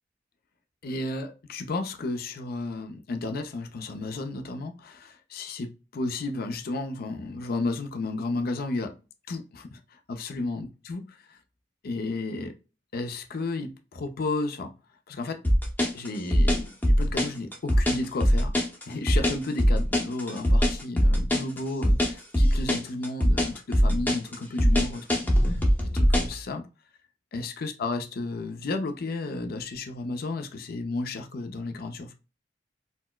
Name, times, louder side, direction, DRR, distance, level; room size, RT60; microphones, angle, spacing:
voice 1, 0.8-8.9 9.3-11.0 11.3-11.4 11.8-12.5 12.9-14.7 15.1-15.4 15.9-18.5 18.9-25.6 25.9-26.6 27.3-32.1, left 2 dB, 55° left, 0.5 m, -33 dB
sound 1, 15.4-26.4, equal, 10° left, 0.7 m, -21 dB
4.2 x 2.0 x 2.2 m
head